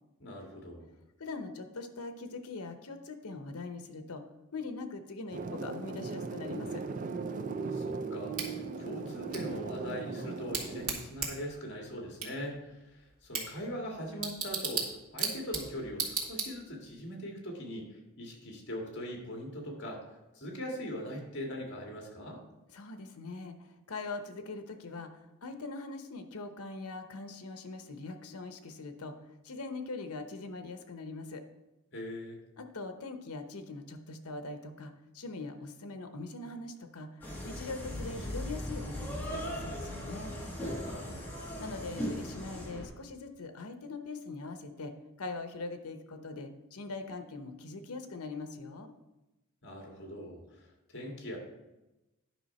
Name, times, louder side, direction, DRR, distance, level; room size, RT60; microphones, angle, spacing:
voice 1, 0.2-0.9 7.7-20.1 20.3-22.4 31.9-32.4 40.8-41.3 49.6-51.4, equal, 55° left, 1 dB, 1.9 m, -41 dB
voice 2, 1.2-4.2 4.5-6.8 22.7-29.1 29.4-31.4 32.6-37.1 37.4-40.3 41.6-44.9 45.2-48.9, left 3 dB, 85° left, 8 dB, 0.9 m, -42 dB
sound 1, 5.3-10.9, right 4 dB, 35° right, 0.4 m, -38 dB
Bicycle / Tick, 8.4-16.9, right 5 dB, 85° right, 2.3 m, -38 dB
sound 2, 37.2-42.9, equal, 10° left, 1.5 m, -38 dB
10.0 x 5.7 x 4.2 m, 1.0 s
head